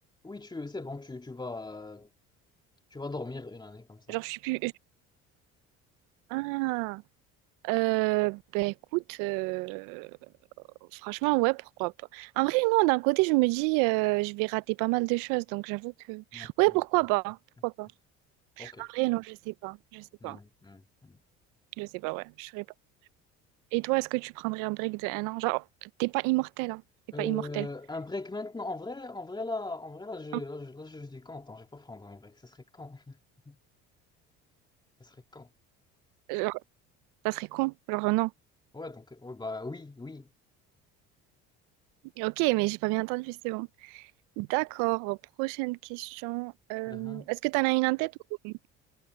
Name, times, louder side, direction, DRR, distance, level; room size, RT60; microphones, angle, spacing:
voice 1, 0.2-2.1 2.9-4.2 16.3-16.5 18.6-18.9 20.2-21.2 27.1-33.2 33.5-33.6 35.0-35.5 38.7-40.3 46.9-47.3, left 2 dB, 15° left, 2.6 m, -40 dB
voice 2, 4.1-4.7 6.3-7.0 7.6-10.1 10.9-17.4 17.6-17.9 18.6-20.4 21.8-22.6 23.7-26.8 27.2-27.7 36.3-36.6 37.2-38.3 42.2-44.1 44.4-48.1 48.4-48.5, right 25 dB, 85° right, 0.5 m, -29 dB
supercardioid pair, 95°, 30 cm